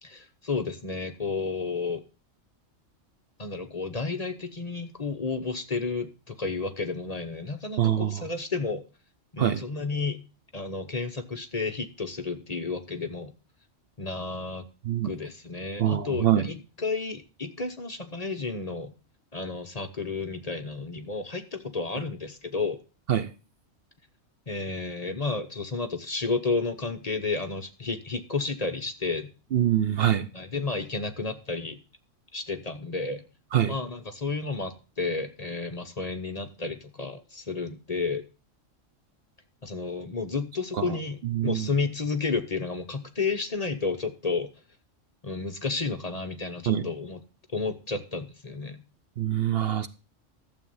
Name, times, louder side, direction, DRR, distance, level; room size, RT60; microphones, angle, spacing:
voice 1, 0.0-2.0 3.4-8.8 9.3-10.2 10.5-13.3 14.0-14.7 15.0-18.9 19.3-22.8 24.5-29.3 30.3-31.8 32.3-33.2 33.7-38.2 39.6-44.5 45.2-47.2 47.5-48.8, left 4 dB, 35° left, 1.0 m, -31 dB
voice 2, 7.8-8.2 9.4-9.6 14.8-15.1 15.8-16.5 23.1-23.3 29.5-30.3 33.5-33.7 40.8-40.9 41.2-41.7 46.7-46.8 49.2-49.9, right 11 dB, 60° right, 0.8 m, -24 dB
12.0 x 7.6 x 5.4 m
omnidirectional pair, 1.3 m